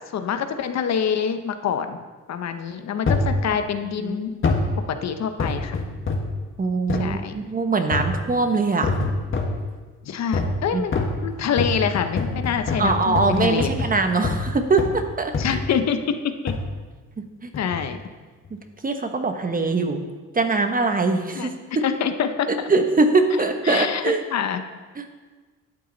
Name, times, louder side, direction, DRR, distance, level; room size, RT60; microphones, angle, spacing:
voice 1, 0.0-2.0 2.3-4.3 4.9-5.8 6.9-7.3 10.0-10.9 11.2-13.7 15.4-16.5 17.6-18.0 19.6-19.8 21.3-21.5 21.8-22.5 23.7-24.0 24.3-24.6, left 7 dB, 60° left, 8 dB, 0.9 m, -26 dB
sound 1, 3.1-3.4 4.4-4.7 5.4-6.4 6.9-7.1 7.9-8.3 8.8-9.6 10.3-10.6 10.9-14.5 14.8-15.0 15.3-15.7 16.5-16.7 17.5-17.9 18.4-18.5, left 3 dB, 40° left, 1.5 m, -25 dB
voice 2, 6.6-8.9 10.7-10.8 12.8-15.6 17.2-17.5 18.8-20.0 20.3-21.5 22.5-24.2 25.0-25.1, right 3 dB, 30° right, 6 dB, 1.2 m, -22 dB
12.0 x 8.4 x 4.0 m, 1.3 s
cardioid pair, 90°, 30 cm